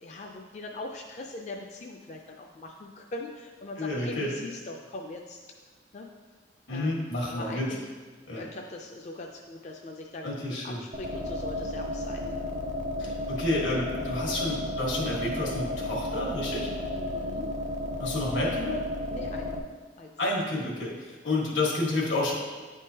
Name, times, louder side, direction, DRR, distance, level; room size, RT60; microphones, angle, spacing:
voice 1, 0.0-5.4 5.9-6.1 6.7-7.8 8.3-12.3 16.9-17.5 19.1-19.5 20.0-20.1, left 2 dB, 40° left, 1 dB, 0.3 m, -41 dB
voice 2, 3.8-4.3 6.7-7.7 8.3-8.5 10.2-10.8 13.0-16.7 18.0-18.8 20.2-22.3, left 2 dB, 85° left, -3 dB, 1.5 m, -30 dB
sound 1, 10.9-19.6, left 1 dB, 40° right, 0.5 m, -33 dB
9.5 x 3.6 x 2.8 m, 1.4 s
head